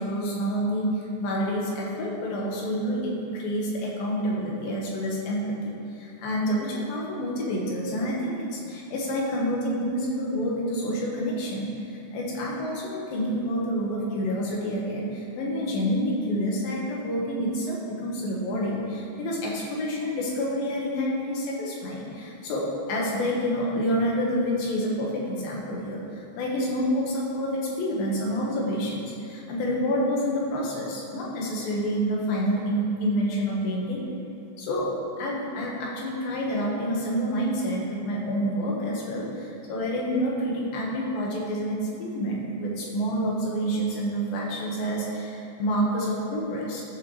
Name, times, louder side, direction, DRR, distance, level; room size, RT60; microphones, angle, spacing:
voice 1, 0.0-27.5 27.8-34.0 34.6-34.9 35.2-46.8, equal, 65° left, -3 dB, 2.9 m, -28 dB
13.5 x 6.9 x 3.2 m, 2.7 s
omnidirectional pair, 4.8 m